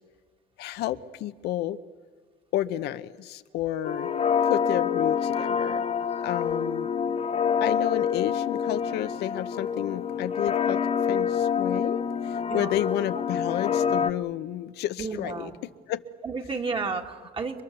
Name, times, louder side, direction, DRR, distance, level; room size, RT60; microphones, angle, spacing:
voice 1, 0.6-1.8 2.5-4.1 4.4-5.8 6.2-6.9 7.6-16.0, left 13 dB, 80° left, 11 dB, 0.8 m, -31 dB
sound 1, 3.8-14.1, left 7 dB, 40° left, 0.9 m, -27 dB
voice 2, 15.0-15.6 16.2-17.6, right 4 dB, 30° right, 3 dB, 2.4 m, -32 dB
29.5 x 23.0 x 7.0 m, 1.5 s
cardioid pair, 110°, 17 cm